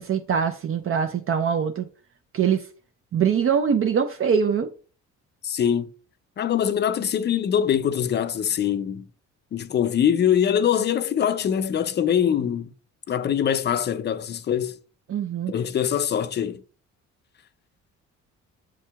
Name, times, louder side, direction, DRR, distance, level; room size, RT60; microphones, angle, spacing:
voice 1, 0.0-1.9 2.3-2.7 3.1-4.7 15.1-15.5, right 7 dB, 45° right, 0.5 m, -23 dB
voice 2, 5.4-5.9 6.4-9.1 9.5-12.7 13.1-14.8 15.5-16.6, left 9 dB, 35° left, 0.4 m, -23 dB
7.4 x 2.7 x 2.3 m
cardioid pair, 90°, 30 cm